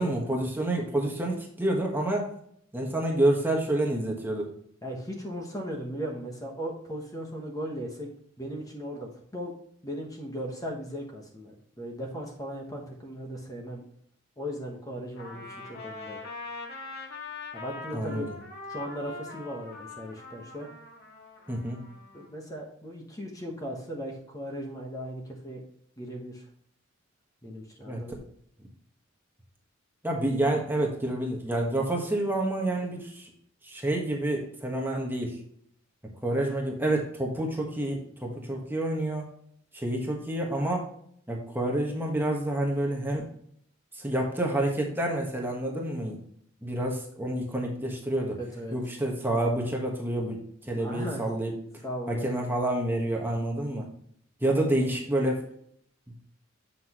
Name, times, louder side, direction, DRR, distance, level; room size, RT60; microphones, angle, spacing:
voice 1, 0.0-2.3 2.7-4.5 17.9-18.3 21.5-21.8 27.8-28.0 30.0-33.3 33.6-35.4 36.2-39.3 39.7-40.9 41.3-43.3 43.9-46.2 46.6-48.4 48.7-51.5 52.1-53.9 54.4-55.5, right 1 dB, 10° right, 0 dB, 1.4 m, -28 dB
voice 2, 4.8-8.1 8.4-9.5 9.8-13.8 14.4-16.2 17.5-18.3 18.7-20.7 22.1-25.6 26.0-26.4 27.4-28.2 48.5-48.7 50.8-51.3 51.8-52.5, equal, 15° left, 0 dB, 1.2 m, -37 dB
Trumpet, 15.2-22.3, left 3 dB, 50° left, 2.0 m, -42 dB
7.8 x 5.9 x 3.0 m, 0.66 s
head